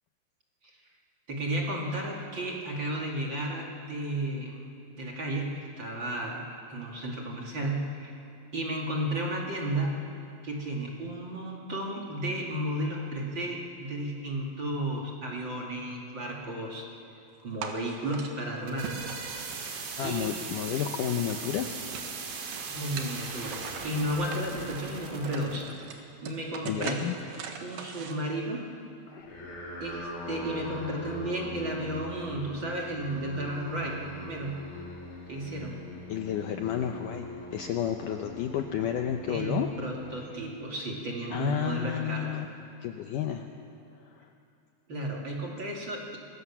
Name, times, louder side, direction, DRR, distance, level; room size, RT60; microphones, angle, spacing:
voice 1, 1.3-4.6 5.0-6.4 6.7-8.1 8.5-9.9 10.4-16.9 17.4-18.9 20.0-20.3 22.6-25.7 26.2-27.0 27.6-28.6 29.8-34.6 35.3-35.8 39.3-42.4 44.9-46.2, right 1 dB, 35° right, -2 dB, 2.4 m, -33 dB
sound 1, 17.6-18.3 18.8-20.6 20.9-22.1 22.5-24.4 24.9-25.0 25.2-28.1, right 6 dB, 65° right, 3.2 m, -41 dB
sound 2, 18.4-25.7, right 5 dB, 85° right, 4.5 m, -39 dB
voice 2, 20.0-21.8 22.1-22.2 26.6-27.1 29.1-29.4 36.1-37.3 37.5-39.7 40.1-40.2 41.3-42.5 42.8-43.5 44.1-44.3, left 9 dB, 75° left, 4 dB, 2.0 m, -31 dB
sound 3, 29.2-40.7, left 1 dB, 50° left, 5.0 m, -42 dB
25.5 x 20.5 x 7.3 m, 2.6 s
omnidirectional pair, 4.7 m